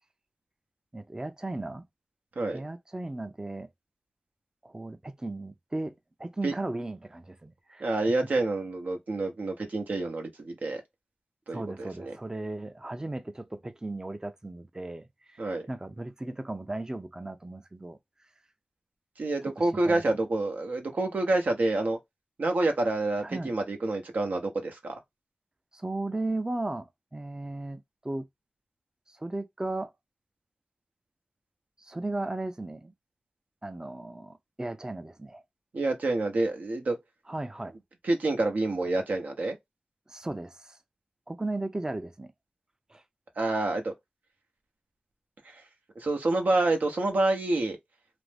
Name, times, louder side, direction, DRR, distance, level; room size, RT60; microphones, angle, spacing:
voice 1, 0.9-1.9 2.5-3.7 4.6-7.9 11.5-18.0 19.4-20.0 23.2-23.5 25.7-28.3 29.1-29.9 31.8-32.9 33.6-35.4 37.3-37.8 40.1-40.8 41.3-42.3 42.9-43.0, right 2 dB, 25° right, 0.4 m, -36 dB
voice 2, 7.8-10.8 11.5-12.1 15.4-15.6 19.2-22.0 22.4-24.9 35.7-37.0 38.0-39.6 43.4-43.9 46.0-47.8, right 2 dB, 80° right, 0.7 m, -28 dB
2.5 x 2.1 x 3.2 m
cardioid pair, 45°, 3 cm